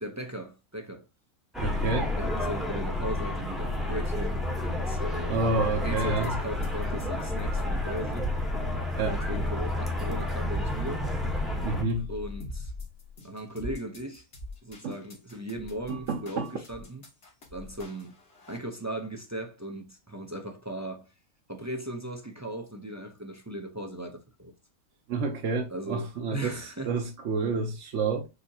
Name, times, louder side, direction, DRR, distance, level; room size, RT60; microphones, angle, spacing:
voice 1, 0.0-1.0 2.2-5.4 5.8-8.3 9.1-11.1 12.1-12.7 13.2-14.2 14.6-17.0 17.5-18.2 18.5-21.1 21.5-24.5 25.7-27.0, right 1 dB, 20° right, 0.4 m, -37 dB
sound 1, 1.5-11.8, left 1 dB, ahead, 0.8 m, -30 dB
voice 2, 1.6-2.1 5.3-6.3 9.0-9.2 11.6-12.1 14.8-15.0 15.9-16.5 25.1-28.3, right 3 dB, 60° right, 1.0 m, -29 dB
sound 2, 6.2-18.6, left 1 dB, 50° left, 1.6 m, -40 dB
6.7 x 2.9 x 2.7 m
omnidirectional pair, 1.5 m